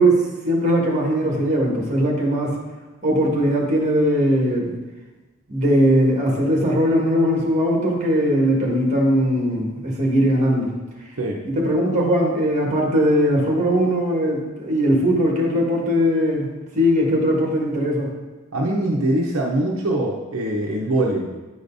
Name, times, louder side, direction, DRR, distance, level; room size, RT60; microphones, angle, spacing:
voice 1, 0.0-2.5 3.0-4.7 5.5-10.7 11.4-16.5 16.7-18.1, equal, 35° right, -2 dB, 1.6 m, -19 dB
voice 2, 18.5-21.3, right 1 dB, 70° right, -1 dB, 0.7 m, -22 dB
9.5 x 5.0 x 2.6 m, 1.2 s
head